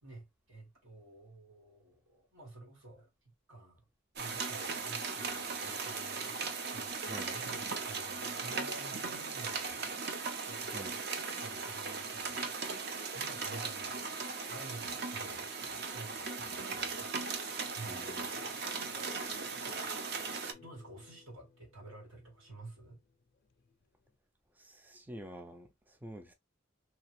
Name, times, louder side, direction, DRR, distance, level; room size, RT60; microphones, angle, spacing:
voice 1, 0.0-3.1 3.5-3.8 4.2-9.9 10.4-10.9 11.4-14.0 14.5-17.1 17.7-18.0 20.3-23.0, right 2 dB, 85° right, 1.9 m, -52 dB
sound 1, 4.2-20.5, right 4 dB, 55° right, 0.6 m, -38 dB
voice 2, 7.1-7.4 10.7-11.0 17.8-18.3 24.6-26.3, right 1 dB, 10° right, 0.4 m, -48 dB
sound 2, 17.4-24.1, left 4 dB, 50° left, 0.5 m, -57 dB
3.2 x 2.8 x 3.0 m
head